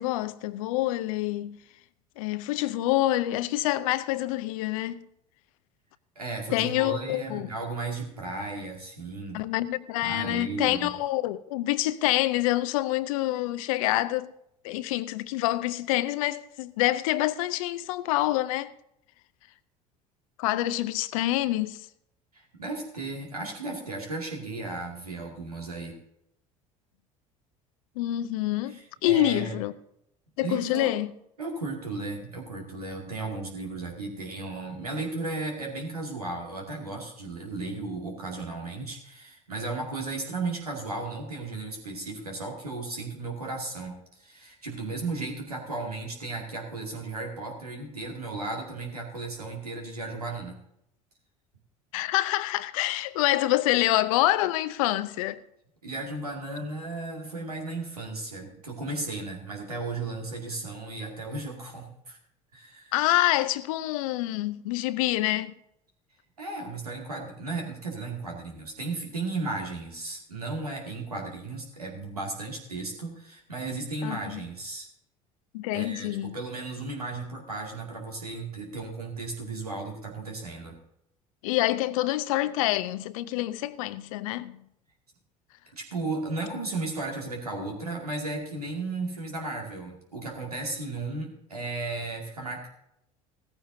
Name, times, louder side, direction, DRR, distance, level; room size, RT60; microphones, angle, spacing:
voice 1, 0.0-1.6 2.2-5.1 6.5-7.5 9.3-14.3 14.6-18.7 20.4-21.8 28.0-29.7 30.4-31.1 51.9-55.4 62.9-65.5 74.0-74.4 75.5-76.4 81.4-84.6, left 16 dB, 65° left, 0.6 m, -27 dB
voice 2, 6.2-9.4 10.0-10.9 22.3-25.9 28.6-29.5 30.4-30.9 31.4-50.6 55.8-62.2 62.5-62.9 66.4-74.9 75.7-80.8 85.7-92.7, right 3 dB, 90° right, 2.3 m, -35 dB
16.0 x 14.0 x 2.7 m
figure-of-eight pair, 65°, 19 cm